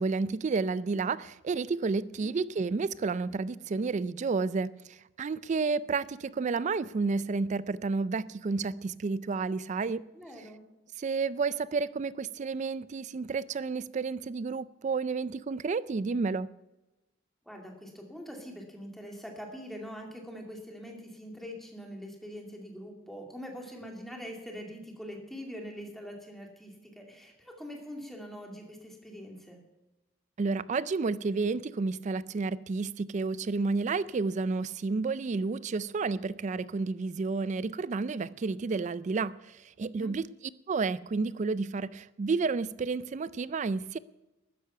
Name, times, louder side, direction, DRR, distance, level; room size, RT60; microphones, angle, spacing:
voice 1, 0.0-10.0 11.0-16.5 30.4-40.3 40.7-44.0, right 4 dB, 35° right, 0.3 m, -31 dB
voice 2, 10.1-10.6 17.4-29.6 39.9-40.2, equal, ahead, 2.4 m, -43 dB
13.0 x 10.0 x 5.7 m
head